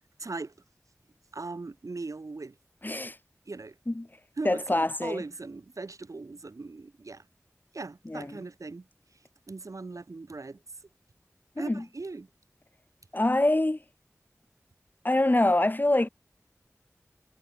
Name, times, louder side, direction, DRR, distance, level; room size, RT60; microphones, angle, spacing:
voice 1, 0.2-0.5 1.3-2.6 3.5-3.8 4.4-7.3 7.7-8.9 9.5-10.6 11.6-12.3, right 3 dB, 80° right, 2.1 m, -39 dB
voice 2, 2.8-3.2 3.9-4.1 4.4-5.2 8.1-8.4 11.6-11.8 13.1-13.8 15.0-16.1, left 1 dB, 35° left, 2.6 m, -25 dB
wide cardioid pair, 45°, 6 cm